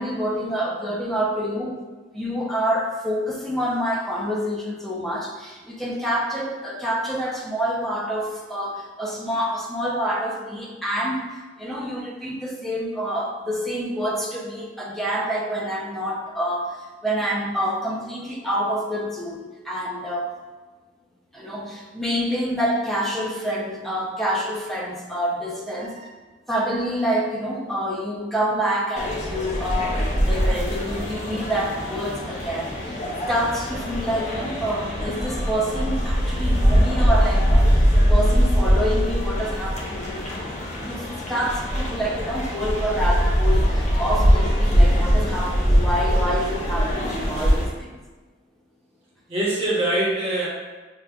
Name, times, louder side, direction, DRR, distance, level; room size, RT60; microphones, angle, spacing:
voice 1, 0.0-1.8 2.1-16.8 17.0-20.3 21.3-25.9 26.5-33.0 33.3-40.5 40.8-48.0, equal, ahead, -4 dB, 0.6 m, -27 dB
sound 1, 29.0-47.6, equal, 40° left, 0.8 m, -22 dB
voice 2, 49.3-50.5, right 1 dB, 35° right, -5 dB, 1.0 m, -24 dB
6.6 x 2.3 x 2.3 m, 1.3 s
head